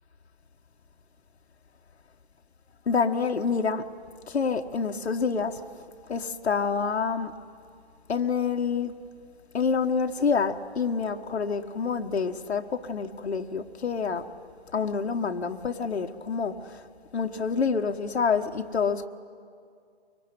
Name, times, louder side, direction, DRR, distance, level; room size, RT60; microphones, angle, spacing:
voice 1, 2.9-3.8 4.3-5.5 6.1-7.3 8.1-8.9 9.5-14.2 14.7-16.8 17.1-19.1, left 5 dB, 70° left, 1.4 m, -27 dB
23.5 x 23.5 x 9.7 m
hypercardioid pair, 175°, 33 cm